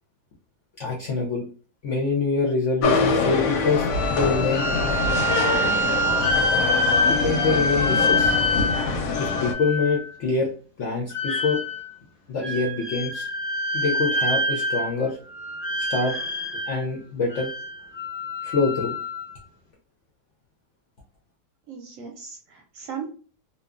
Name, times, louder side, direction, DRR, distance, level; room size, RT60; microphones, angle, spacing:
voice 1, 0.8-1.4 1.8-4.8 7.1-8.4 9.2-10.5 10.8-11.6 12.3-13.3 13.7-15.2 15.9-16.2 16.7-17.5 18.4-19.0, left 4 dB, 65° left, -1 dB, 0.7 m, -25 dB
sound 1, 2.8-9.5, left 4 dB, 90° left, 1.2 m, -24 dB
sound 2, 3.9-10.1 11.1-11.9 12.4-15.0 15.3-16.8 17.3-19.3, left 1 dB, 25° left, 0.5 m, -26 dB
voice 2, 21.7-23.1, right 6 dB, 65° right, 1 dB, 0.9 m, -37 dB
2.7 x 2.3 x 2.3 m, 0.39 s
omnidirectional pair, 1.8 m